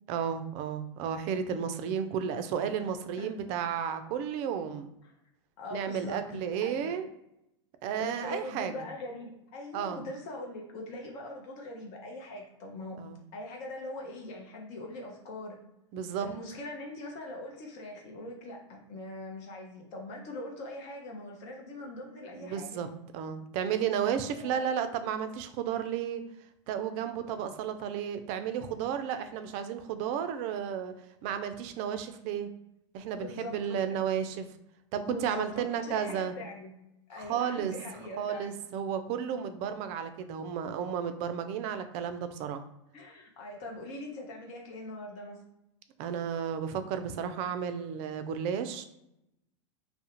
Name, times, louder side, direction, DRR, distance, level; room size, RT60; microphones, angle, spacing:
voice 1, 0.1-4.9 5.7-7.1 7.8-8.7 9.7-10.0 13.0-13.2 15.9-16.3 22.3-22.9 23.1-26.2 26.7-30.9 31.2-32.5 32.9-34.5 34.9-36.3 37.1-37.7 38.2-42.6 46.0-48.8, right 8 dB, 45° right, 9 dB, 0.4 m, -33 dB
voice 2, 5.6-7.0 8.0-13.0 13.3-15.6 16.2-22.8 24.4-24.6 33.2-33.6 33.9-34.0 35.1-36.7 37.1-38.5 42.9-45.4, left 1 dB, 50° left, 0 dB, 0.7 m, -41 dB
2.4 x 2.1 x 2.8 m, 0.84 s
hypercardioid pair, 95°, 16 cm